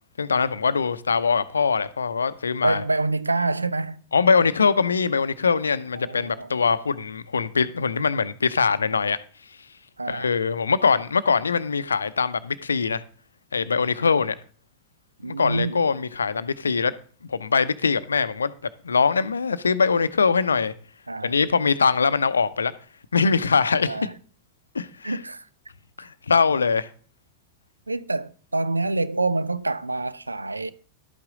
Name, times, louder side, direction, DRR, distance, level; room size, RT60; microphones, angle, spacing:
voice 1, 0.2-2.8 4.1-9.2 10.1-13.0 13.5-14.3 15.2-16.9 17.3-18.5 18.8-20.7 21.2-22.7 23.1-24.0 24.7-25.2 26.0-26.9, left 5 dB, 75° left, 0.6 m, -22 dB
voice 2, 2.6-4.0 6.0-6.7 10.0-10.3 15.2-15.9 21.1-21.4 23.8-24.1 25.0-25.4 27.9-30.7, right 3 dB, 80° right, 0.5 m, -27 dB
12.0 x 8.6 x 3.8 m
figure-of-eight pair, 90°, 0 cm